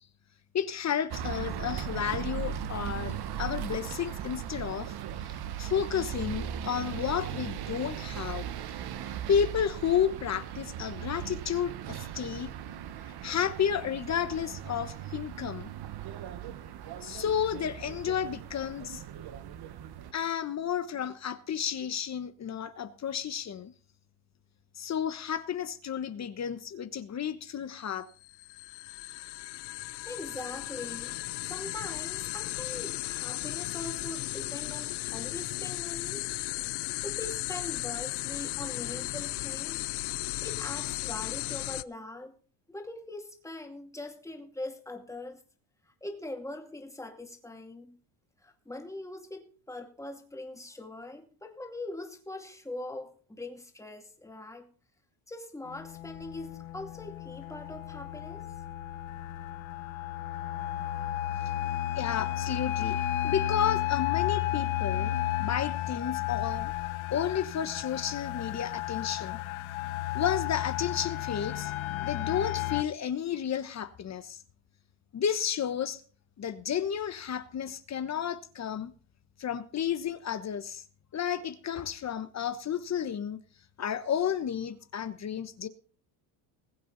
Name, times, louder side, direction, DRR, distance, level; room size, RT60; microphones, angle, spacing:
voice 1, 0.5-4.9 5.6-8.5 9.3-12.5 13.2-15.7 17.0-19.0 20.1-23.7 24.8-28.1 61.9-66.7 67.1-69.4 70.1-71.7 72.0-74.4 75.1-76.0 76.4-78.9 79.4-80.8 81.1-83.4 83.8-85.7, left 8 dB, 35° left, 1.2 m, -32 dB
sound 1, 1.1-20.1, right 9 dB, 50° right, 1.4 m, -38 dB
sound 2, 28.2-41.8, left 19 dB, 55° left, 0.6 m, -35 dB
voice 2, 30.1-31.2 31.5-36.3 37.0-39.9 40.4-42.4 42.7-45.4 46.0-48.0 48.4-54.7 55.3-58.5, left 2 dB, 5° left, 2.4 m, -42 dB
sound 3, 55.7-72.8, left 13 dB, 70° left, 1.1 m, -33 dB
20.5 x 8.4 x 4.0 m
cardioid pair, 135°, 50 cm